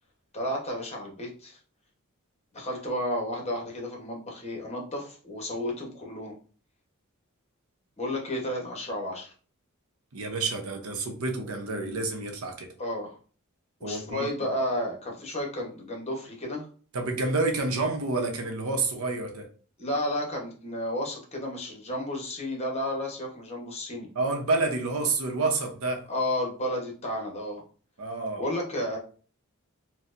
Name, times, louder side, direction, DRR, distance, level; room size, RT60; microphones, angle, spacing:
voice 1, 0.3-1.6 2.5-6.3 8.0-9.3 12.8-13.1 13.8-16.6 19.8-24.1 26.1-27.6 28.4-29.0, left 1 dB, 30° left, 0.9 m, -32 dB
voice 2, 10.1-12.7 13.8-14.3 16.9-19.5 24.1-26.0 28.0-28.4, right 3 dB, 85° right, 0.7 m, -29 dB
4.3 x 2.2 x 2.5 m
head